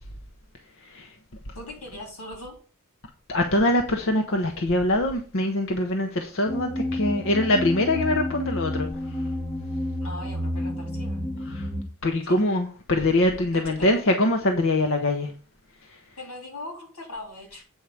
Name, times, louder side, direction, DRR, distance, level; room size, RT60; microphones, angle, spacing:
voice 1, 0.8-1.1 3.3-9.2 11.5-11.7 12.0-15.3 15.8-16.0, left 1 dB, 60° left, 0.9 m, -24 dB
voice 2, 1.5-2.6 10.0-11.2 12.2-12.4 13.5-14.0 16.2-17.6, left 2 dB, 85° left, 3.7 m, -39 dB
sound 1, 6.5-11.8, left 1 dB, 15° left, 1.0 m, -30 dB
8.1 x 4.7 x 7.0 m
head